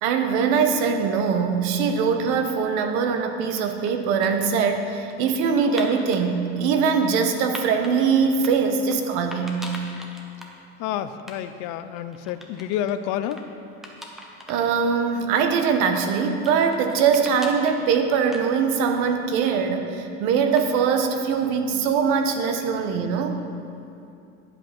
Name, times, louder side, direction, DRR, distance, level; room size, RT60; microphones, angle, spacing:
voice 1, 0.0-9.6 14.5-23.4, right 6 dB, 70° right, 6 dB, 1.3 m, -22 dB
sound 1, 1.7-2.6 3.2-6.2 6.8-7.9 8.3-9.0 9.3-10.6 10.9-11.0 11.2-11.4 11.6-12.9 13.3-13.4 13.8-14.7 15.0-15.1 15.8-18.9 19.2-19.9 20.6-21.0, equal, ahead, 0.9 m, -42 dB
voice 2, 10.8-13.5, left 10 dB, 60° left, 12 dB, 0.6 m, -29 dB
11.5 x 8.0 x 6.0 m, 2.6 s
cardioid pair, 170°, 32 cm